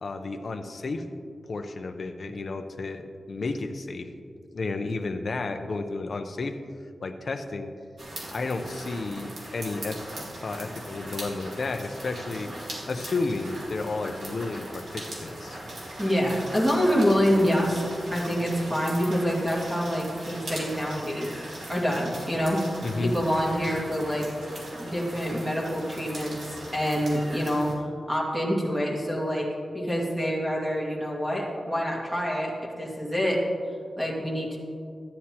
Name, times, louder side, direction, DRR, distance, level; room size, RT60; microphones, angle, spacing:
voice 1, 0.0-1.0 1.5-4.1 4.5-6.6 7.0-7.7 8.3-10.0 10.4-12.5 12.9-15.6 22.8-23.1, left 3 dB, 50° left, 6 dB, 0.7 m, -32 dB
sound 1, 8.0-27.7, right 1 dB, 90° right, 2.2 m, -39 dB
voice 2, 16.0-17.9 18.1-21.3 21.7-22.6 23.0-24.3 24.8-26.4 26.7-33.4 34.0-34.6, equal, 10° right, -4 dB, 2.1 m, -26 dB
14.5 x 9.6 x 2.9 m, 2.4 s
wide cardioid pair, 150°, 0 cm